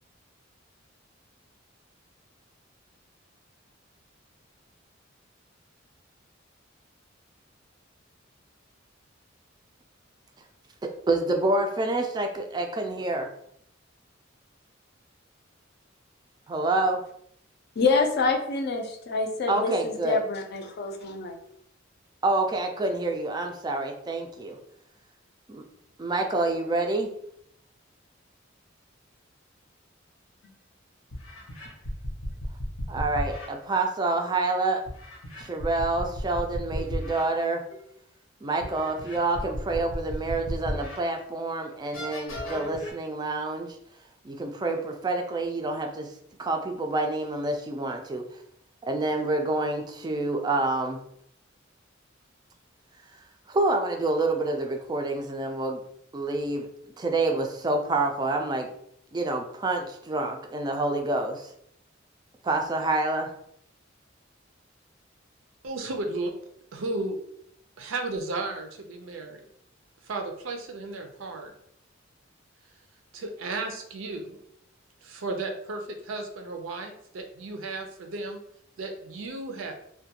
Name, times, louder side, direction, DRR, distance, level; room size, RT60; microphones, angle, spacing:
voice 1, 10.8-13.3 16.5-17.0 19.5-20.2 22.2-24.6 25.5-25.6 26.0-27.1 32.9-34.8 35.4-37.6 38.4-43.8 44.2-46.1 46.4-48.2 48.8-51.0 53.5-55.8 56.1-56.7 57.0-58.7 59.1-61.5 62.4-63.3, right 2 dB, 20° right, 4 dB, 0.3 m, -27 dB
voice 2, 17.8-21.4, left 4 dB, 55° left, 3 dB, 0.4 m, -26 dB
sound 1, 30.4-30.5 31.1-33.5 34.9-37.2 37.7-37.8 38.6-41.0 41.5-41.6 41.9-42.9, equal, 90° left, 0.8 m, -34 dB
voice 3, 65.6-66.3 66.7-67.2 67.8-69.4 70.0-71.5 73.1-74.4 75.0-78.4 78.8-79.7, right 2 dB, 80° right, 4 dB, 0.5 m, -34 dB
2.4 x 2.2 x 2.7 m, 0.71 s
head